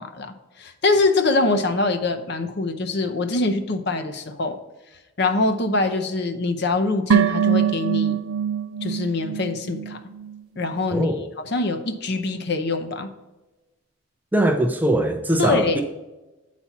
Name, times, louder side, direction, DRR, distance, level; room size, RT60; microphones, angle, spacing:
voice 1, 0.0-4.6 5.2-8.2 8.8-10.0 10.6-11.1 11.4-13.1 15.4-15.8, left 3 dB, 50° left, 7 dB, 0.7 m, -24 dB
sound 1, 7.1-10.4 10.7-10.8, right 8 dB, 80° right, 0.4 m, -23 dB
voice 2, 10.9-11.2 14.3-15.8, right 1 dB, 10° right, 6 dB, 0.4 m, -21 dB
8.4 x 4.2 x 5.9 m, 1.1 s
head